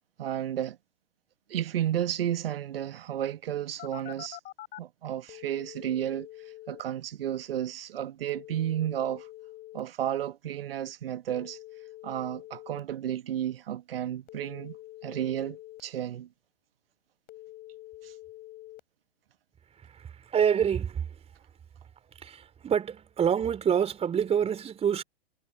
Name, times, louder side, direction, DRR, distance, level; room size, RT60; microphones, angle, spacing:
voice 1, 0.2-0.8 1.5-4.4 4.8-9.3 9.7-11.6 12.0-14.8 15.0-16.3 18.0-18.1, right 11 dB, 65° right, 1.5 m, -32 dB
Telephone, 3.8-4.8 5.3-6.8 8.3-9.8 11.3-12.8 14.3-15.8 17.3-18.8, left 15 dB, 30° left, 4.1 m, -46 dB
voice 2, 19.9-21.0 22.2-25.0, right 8 dB, 20° right, 3.5 m, -27 dB
figure-of-eight pair, 100°, 32 cm